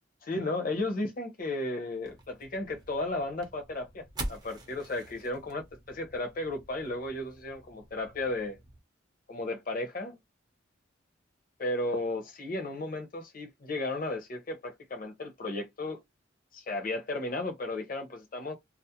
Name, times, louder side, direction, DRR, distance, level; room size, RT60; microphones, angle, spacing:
voice 1, 0.2-8.6 9.3-10.2 11.6-16.0 16.5-18.5, left 2 dB, 45° left, 0.7 m, -34 dB
sound 1, 2.0-8.8, right 1 dB, 20° right, 0.5 m, -45 dB
2.4 x 2.0 x 2.7 m
head